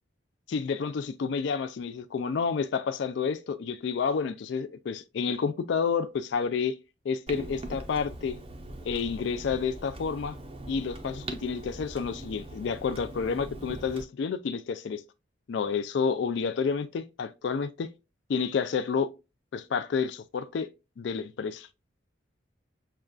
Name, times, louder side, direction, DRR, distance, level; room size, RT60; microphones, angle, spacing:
voice 1, 0.5-6.8 7.0-8.4 8.8-10.4 10.7-15.0 15.5-17.9 18.3-19.1 19.5-20.7 21.0-21.7, left 5 dB, 65° left, 0.3 m, -30 dB
Clock, 7.3-14.0, right 1 dB, 30° right, 0.5 m, -41 dB
6.5 x 2.4 x 2.2 m
head